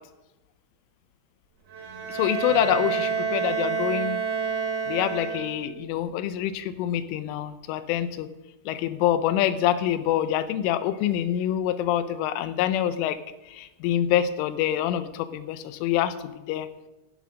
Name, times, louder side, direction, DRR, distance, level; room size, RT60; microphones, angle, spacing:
Bowed string instrument, 1.7-5.8, right 6 dB, 60° right, 3.2 m, -28 dB
voice 1, 2.1-4.2 4.9-8.3 8.7-13.2 13.5-16.2 16.5-16.7, left 11 dB, 80° left, 12 dB, 3.0 m, -26 dB
16.5 x 7.3 x 6.2 m, 1.0 s
omnidirectional pair, 5.8 m